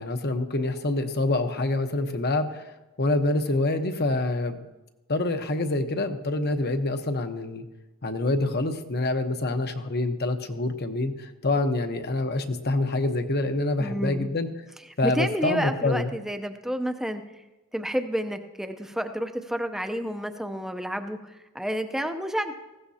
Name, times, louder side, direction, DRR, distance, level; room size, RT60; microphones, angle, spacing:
voice 1, 0.0-4.6 5.1-7.6 8.0-14.5 15.0-16.1, left 2 dB, 45° left, 7 dB, 1.0 m, -26 dB
voice 2, 13.8-14.3 15.0-17.2 17.7-22.5, equal, ahead, 7 dB, 0.7 m, -30 dB
19.0 x 16.0 x 2.8 m, 1.1 s
head